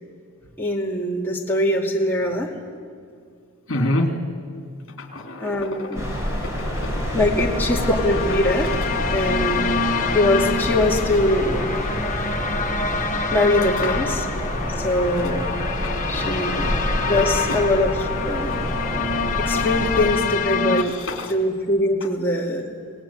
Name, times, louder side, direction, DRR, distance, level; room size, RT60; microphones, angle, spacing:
voice 1, 0.6-2.5 5.4-6.0 7.1-8.8 9.1-9.7 10.1-11.7 13.3-14.3 14.8-15.5 16.1-16.8 17.0-18.8 19.4-20.9 21.3-22.6, left 1 dB, 10° left, -2 dB, 2.3 m, -22 dB
voice 2, 3.7-4.1 5.0-5.8 6.4-7.0 13.8-13.9 15.8-16.6 17.5-17.6 20.8-21.3, left 1 dB, 55° left, 4 dB, 3.2 m, -28 dB
sound 1, 5.9-20.1, equal, 15° right, 5.0 m, -27 dB
sound 2, 7.3-20.8, left 4 dB, 35° left, 1.5 m, -26 dB
26.5 x 19.0 x 8.9 m, 2.2 s
head